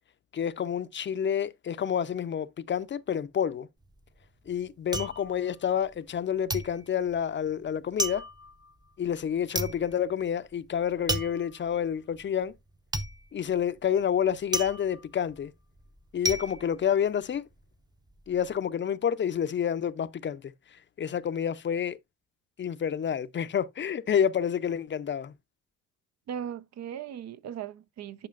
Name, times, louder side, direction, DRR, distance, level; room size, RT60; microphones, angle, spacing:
voice 1, 0.3-3.7 4.5-8.2 9.0-12.5 13.3-15.5 16.1-17.5 18.3-22.0 22.6-25.3, left 8 dB, 40° left, 0.5 m, -29 dB
sound 1, 3.8-6.2 6.5-17.6 17.9-18.5, right 1 dB, 15° right, 0.7 m, -35 dB
voice 2, 26.3-28.3, right 9 dB, 60° right, 0.6 m, -38 dB
10.5 x 4.8 x 2.4 m
cardioid pair, 90°, 30 cm